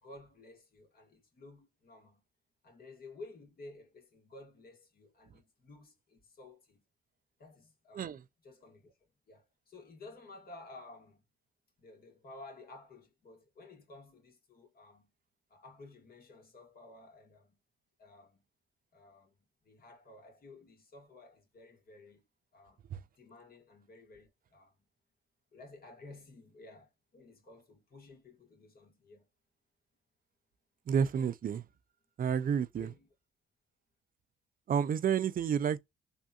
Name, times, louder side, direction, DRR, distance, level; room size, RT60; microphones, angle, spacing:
voice 1, 0.0-2.2 2.6-6.8 7.4-8.1 8.4-11.2 11.8-15.1 15.5-17.6 18.0-18.4 18.9-19.3 19.6-22.2 22.5-22.8 23.2-24.8 25.5-29.3 32.8-33.1, left 2 dB, 50° left, 1.8 m, -54 dB
voice 2, 30.9-31.6 32.2-32.9 34.7-35.8, right 7 dB, 45° right, 0.5 m, -30 dB
3.5 x 2.6 x 2.4 m
cardioid pair, 90°, 20 cm